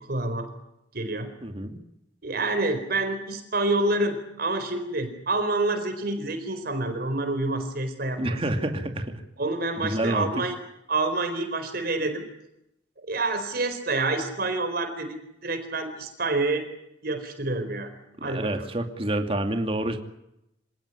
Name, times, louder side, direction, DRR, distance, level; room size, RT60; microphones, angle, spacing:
voice 1, 0.1-0.5 0.9-1.3 2.2-8.7 9.4-10.5 10.9-12.2 13.0-16.6 17.0-17.9 18.2-18.7, right 2 dB, 55° right, 8 dB, 4.4 m, -28 dB
voice 2, 1.4-1.8 8.2-9.1 9.8-10.3 18.2-20.0, right 1 dB, 30° right, 5 dB, 2.5 m, -28 dB
27.0 x 18.0 x 9.8 m, 0.83 s
head